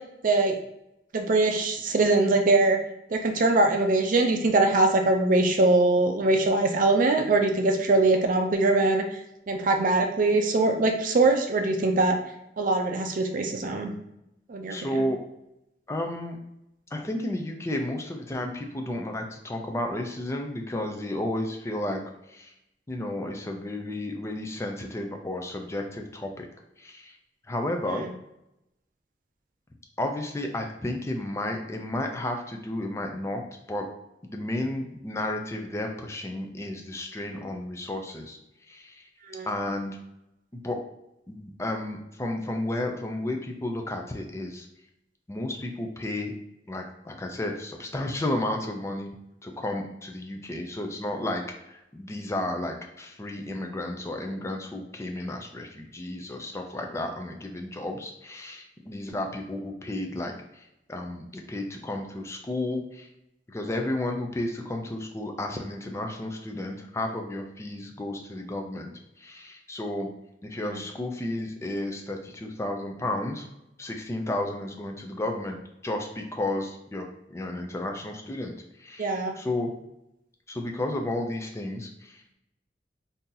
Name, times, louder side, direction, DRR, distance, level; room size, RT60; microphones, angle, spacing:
voice 1, 0.2-0.5 1.1-2.8 3.1-9.0 9.5-12.1 12.6-13.9 14.5-15.1 39.3-39.5 79.0-79.3, right 2 dB, 50° right, 4 dB, 0.5 m, -22 dB
voice 2, 14.7-15.2 15.9-16.4 16.9-22.0 22.3-22.5 22.9-26.5 26.8-27.2 27.5-28.0 30.0-33.4 33.7-33.8 34.2-38.4 38.7-39.1 39.5-40.0 40.6-40.8 41.3-44.7 45.3-46.3 46.7-49.2 49.4-63.1 63.5-68.9 69.2-70.1 70.4-73.5 73.8-79.7 80.5-82.3, left 1 dB, 15° left, 3 dB, 0.4 m, -32 dB
2.7 x 2.7 x 3.7 m, 0.85 s
head